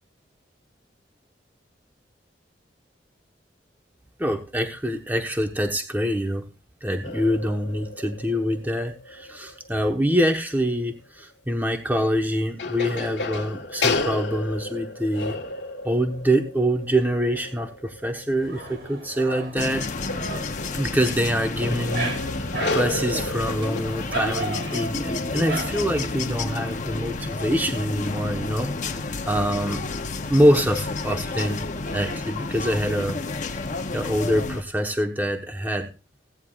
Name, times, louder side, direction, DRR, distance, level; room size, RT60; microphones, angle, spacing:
voice 1, 4.2-6.5 6.8-15.3 15.8-19.9 20.7-29.8 30.3-33.2 33.5-33.6 33.9-35.9, equal, 10° right, 3 dB, 1.1 m, -25 dB
sound 1, 7.0-10.2 10.7-10.8 12.1-12.2 12.6-23.8, left 3 dB, 80° left, 1.5 m, -32 dB
Dog, 18.4-26.5, right 3 dB, 75° right, 3.9 m, -36 dB
sound 2, 19.6-34.6, left 3 dB, 45° left, 0.8 m, -30 dB
16.5 x 9.5 x 2.4 m, 0.31 s
head